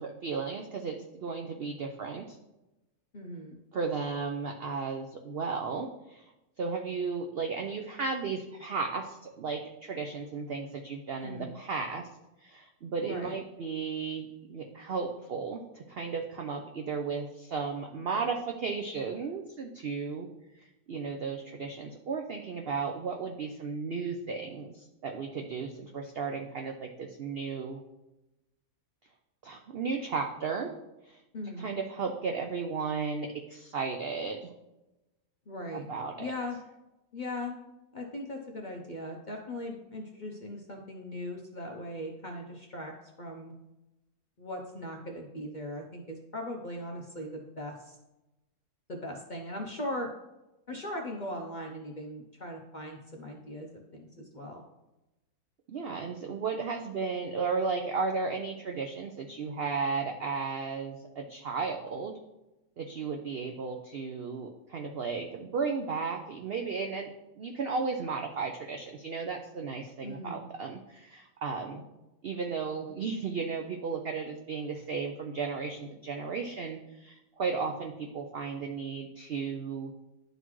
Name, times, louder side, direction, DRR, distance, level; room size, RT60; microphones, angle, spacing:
voice 1, 0.0-2.4 3.7-6.2 6.6-12.0 12.4-20.3 20.6-27.8 29.4-30.7 31.1-31.2 31.6-34.5 35.7-36.3 55.7-62.1 62.8-67.1 67.4-71.8 72.2-79.9, right 5 dB, 75° right, 3 dB, 0.5 m, -34 dB
voice 2, 3.1-3.6 11.2-11.6 13.0-13.3 31.3-31.7 35.5-35.9 36.2-36.6 37.1-37.6 37.9-42.9 43.2-43.5 44.4-48.0 48.9-50.1 50.7-54.6 70.0-70.5, left 1 dB, 45° left, 0 dB, 0.6 m, -39 dB
11.0 x 4.0 x 3.1 m, 0.97 s
omnidirectional pair, 1.7 m